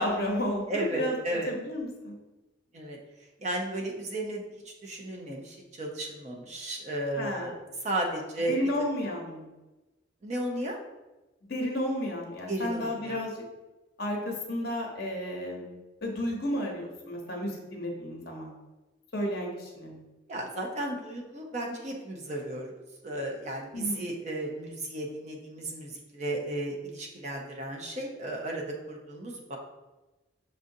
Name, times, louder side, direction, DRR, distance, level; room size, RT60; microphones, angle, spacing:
voice 1, 0.0-1.1 1.5-2.1 7.2-7.5 8.5-9.5 11.5-13.3 14.0-18.6 19.1-20.0 23.7-24.0, left 1 dB, 55° left, 0 dB, 0.9 m, -32 dB
voice 2, 0.7-1.5 2.7-3.0 3.4-8.6 9.0-9.1 10.2-10.8 12.5-13.2 20.3-29.6, right 1 dB, 35° right, 0 dB, 0.5 m, -34 dB
6.2 x 2.5 x 2.6 m, 1.1 s
head